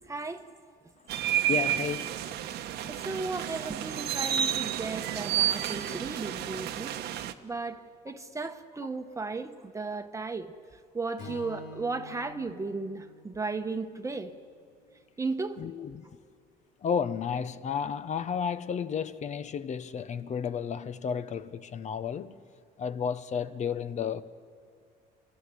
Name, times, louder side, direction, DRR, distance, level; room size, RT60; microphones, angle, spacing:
voice 1, 0.1-0.4 2.9-6.9 7.4-10.5 10.9-14.3 15.2-15.6, right 3 dB, 20° right, 1.1 m, -35 dB
sound 1, 1.1-7.3, right 11 dB, 75° right, 1.1 m, -31 dB
voice 2, 1.5-2.4 15.6-16.1 16.8-22.3 22.8-24.2, left 7 dB, 45° left, 0.9 m, -32 dB
Strum, 11.2-15.5, left 2 dB, 75° left, 3.9 m, -49 dB
29.0 x 13.5 x 9.8 m
cardioid pair, 110°, 17 cm